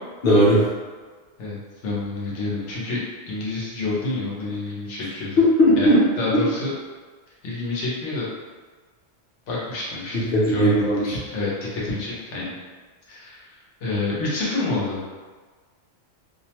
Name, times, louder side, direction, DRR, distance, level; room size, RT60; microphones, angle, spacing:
voice 1, 0.2-0.7 5.6-6.0 10.3-11.0, right 1 dB, 50° left, -7 dB, 0.9 m, -17 dB
voice 2, 1.4-5.4 5.8-5.9 6.2-6.7 7.4-8.3 9.5-12.5 13.1-13.5 13.8-15.0, left 3 dB, 80° left, -5 dB, 1.1 m, -28 dB
2.6 x 2.1 x 2.8 m, 1.4 s
omnidirectional pair, 1.2 m